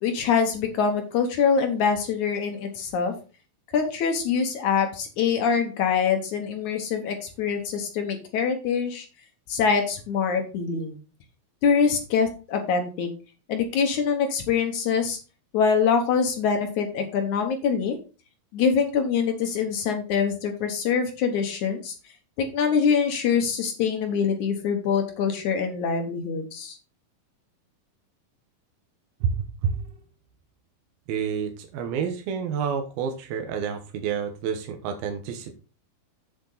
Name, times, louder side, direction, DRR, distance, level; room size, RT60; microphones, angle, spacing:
voice 1, 0.0-3.1 3.7-9.1 9.5-11.0 11.6-13.1 13.5-15.2 15.5-18.0 18.5-21.9 22.4-26.8, left 6 dB, 65° left, 5 dB, 2.2 m, -24 dB
voice 2, 31.1-35.6, right 7 dB, 80° right, 5 dB, 3.0 m, -29 dB
8.2 x 7.0 x 3.9 m, 0.33 s
omnidirectional pair, 4.4 m